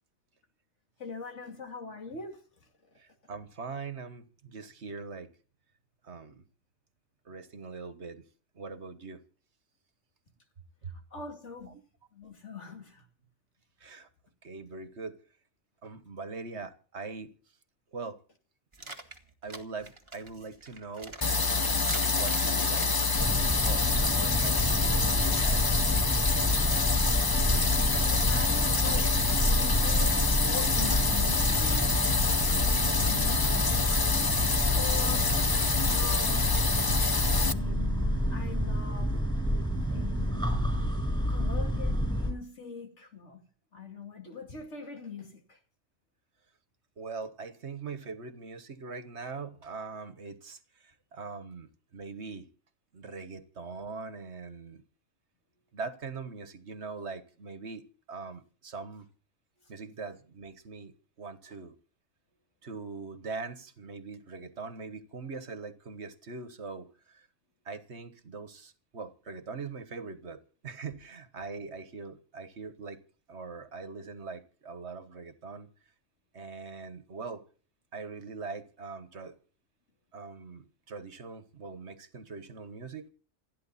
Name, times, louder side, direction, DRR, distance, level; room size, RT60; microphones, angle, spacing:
voice 1, 1.0-2.4 11.1-11.7 12.1-13.0 28.0-32.1 32.6-34.1 34.8-36.8 37.3-39.1 39.9-40.6 41.3-43.4 43.7-45.6, left 5 dB, 70° left, 2.8 m, -42 dB
voice 2, 3.0-5.3 6.0-6.4 7.2-8.2 8.6-9.2 10.8-10.9 13.8-14.1 14.4-15.2 15.8-17.3 17.9-18.2 18.8-18.9 19.4-21.2 22.1-22.9 23.6-25.6 47.0-52.5 52.9-54.8 55.7-57.8 58.1-59.1 59.7-60.9 61.2-61.8 62.6-67.3 67.6-73.0 73.3-75.7 76.3-77.4 77.9-79.3 80.1-83.1, right 4 dB, 65° right, 1.7 m, -42 dB
sound 1, 18.7-23.4, right 2 dB, 25° right, 1.8 m, -45 dB
sound 2, 21.2-37.5, left 4 dB, 25° left, 0.5 m, -27 dB
sound 3, 23.2-42.3, equal, 5° left, 5.8 m, -29 dB
28.5 x 9.9 x 4.2 m
omnidirectional pair, 1.3 m